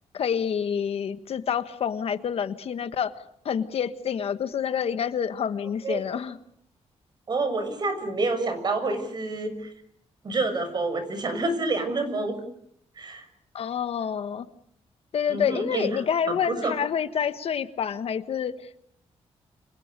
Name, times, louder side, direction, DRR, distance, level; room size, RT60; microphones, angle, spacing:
voice 1, 0.1-3.2 3.4-6.4 13.5-14.5 15.1-18.8, left 8 dB, 60° left, 12 dB, 1.4 m, -28 dB
voice 2, 7.3-9.7 10.2-12.4 13.0-13.2 15.3-15.9 16.3-16.7, right 2 dB, 40° right, 9 dB, 6.8 m, -28 dB
30.0 x 27.5 x 6.8 m, 0.70 s
wide cardioid pair, 145°, 11 cm